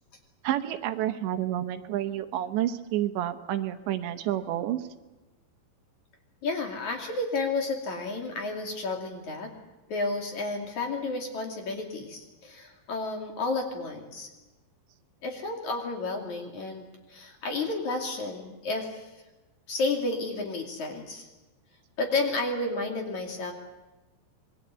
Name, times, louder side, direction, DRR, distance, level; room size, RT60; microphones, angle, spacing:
voice 1, 0.4-4.9, right 12 dB, 80° right, 8 dB, 3.3 m, -29 dB
voice 2, 6.4-9.5 9.9-14.3 15.2-16.8 17.1-19.0 19.7-21.3 22.0-23.5, left 3 dB, 45° left, 2 dB, 3.5 m, -31 dB
26.5 x 21.5 x 8.3 m, 1.1 s
omnidirectional pair, 5.2 m